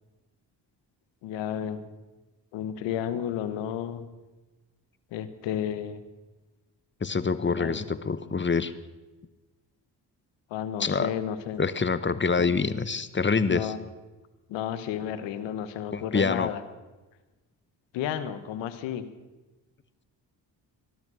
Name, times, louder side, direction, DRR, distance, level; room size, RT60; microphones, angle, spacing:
voice 1, 1.2-1.8 2.5-4.0 5.1-6.0 7.6-7.8 10.5-11.6 12.4-12.5 13.4-13.9 14.5-16.6 17.9-19.0, left 10 dB, 90° left, 12 dB, 1.2 m, -32 dB
voice 2, 7.0-8.7 10.8-11.1 11.6-13.7 15.9-16.5, left 4 dB, 25° left, 14 dB, 1.2 m, -26 dB
18.5 x 12.5 x 6.3 m, 1.2 s
supercardioid pair, 55°, 43 cm